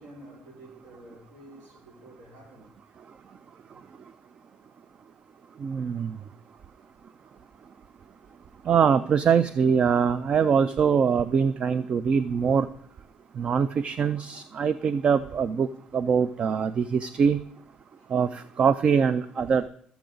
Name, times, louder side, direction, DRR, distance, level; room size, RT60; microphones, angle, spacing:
voice 1, 0.0-2.7 8.6-8.7 17.9-18.2, right 1 dB, 90° right, 3.2 m, -49 dB
voice 2, 5.6-6.2 8.7-12.7 13.4-15.7 15.9-17.4 18.1-19.7, right 6 dB, 40° right, 0.3 m, -23 dB
13.0 x 7.0 x 3.8 m
cardioid pair, 115°, 3 cm